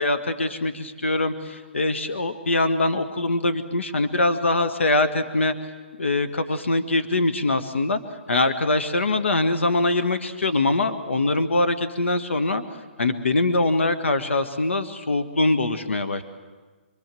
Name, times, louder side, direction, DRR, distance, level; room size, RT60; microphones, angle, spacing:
voice 1, 0.0-5.5 6.0-8.0 8.3-12.6 13.0-16.2, left 2 dB, 90° left, 11 dB, 1.6 m, -23 dB
26.5 x 23.5 x 7.7 m, 1.4 s
hypercardioid pair, 145°, 6 cm